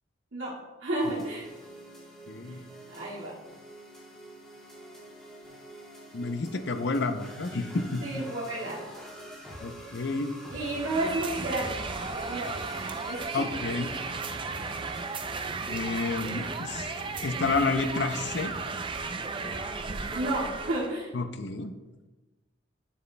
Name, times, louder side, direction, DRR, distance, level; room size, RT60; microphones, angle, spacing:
voice 1, 0.8-1.5 2.5-2.6 2.9-3.3 8.0-8.8 10.5-13.4 20.1-21.1, right 1 dB, 85° right, -7 dB, 2.1 m, -32 dB
sound 1, 1.0-20.4, right 1 dB, 5° left, 2.5 m, -46 dB
voice 2, 2.3-2.6 6.1-8.2 9.6-10.3 13.3-13.9 15.7-16.9 17.2-18.5 21.1-21.7, left 3 dB, 55° left, 8 dB, 0.6 m, -30 dB
sound 2, 10.6-21.0, right 4 dB, 25° right, 0.4 m, -35 dB
11.0 x 7.0 x 2.2 m, 1.2 s
head